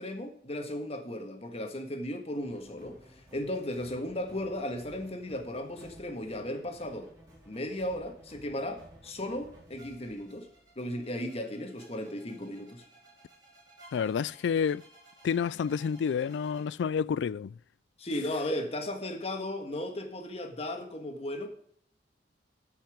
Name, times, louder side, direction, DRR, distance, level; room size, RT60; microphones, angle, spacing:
voice 1, 0.0-7.1 7.4-10.5 10.7-12.8 18.0-21.5, left 1 dB, 35° left, 1.6 m, -36 dB
sound 1, 2.4-16.6, right 1 dB, 20° right, 4.4 m, -56 dB
voice 2, 13.9-14.8 15.2-17.5, left 7 dB, 85° left, 0.3 m, -29 dB
15.0 x 5.8 x 5.0 m
head